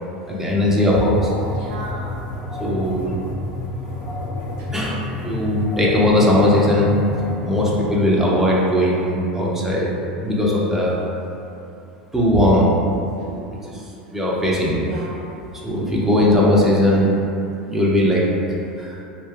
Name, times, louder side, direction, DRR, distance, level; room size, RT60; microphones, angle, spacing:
voice 1, 0.3-1.3 2.6-3.1 4.7-7.0 7.4-9.9 10.2-11.0 12.1-12.7 14.1-14.8 15.6-17.1 17.7-18.3 18.8-19.0, left 1 dB, 5° right, -5 dB, 0.6 m, -18 dB
sound 1, 0.7-7.8, left 1 dB, 50° left, 0.6 m, -29 dB
voice 2, 1.5-2.1 3.1-3.5 4.6-4.7 10.5-10.6 13.2-13.4 14.8-15.3, right 3 dB, 65° right, -2 dB, 0.4 m, -37 dB
2.3 x 2.2 x 3.2 m, 2.7 s
hypercardioid pair, 80°, 5 cm